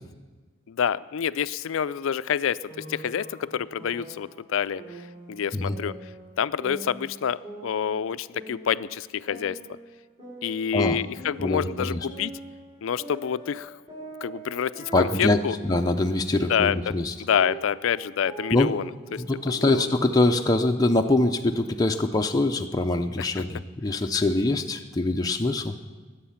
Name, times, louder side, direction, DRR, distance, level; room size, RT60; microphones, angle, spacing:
voice 1, 0.7-4.8 5.3-6.0 6.4-9.6 10.4-12.3 12.8-13.7 14.2-15.6 16.5-16.9 17.2-19.9, left 8 dB, 75° left, 16 dB, 0.4 m, -27 dB
sound 1, 2.7-4.3 4.8-6.3 6.6-8.9 9.3-11.7 12.1-16.2 16.5-20.5, right 2 dB, 25° right, 5.3 m, -43 dB
voice 2, 11.4-12.1 14.9-17.1 18.5-18.7 19.1-25.9, left 2 dB, 20° left, 3 dB, 0.5 m, -24 dB
21.0 x 8.2 x 5.7 m, 1.4 s
head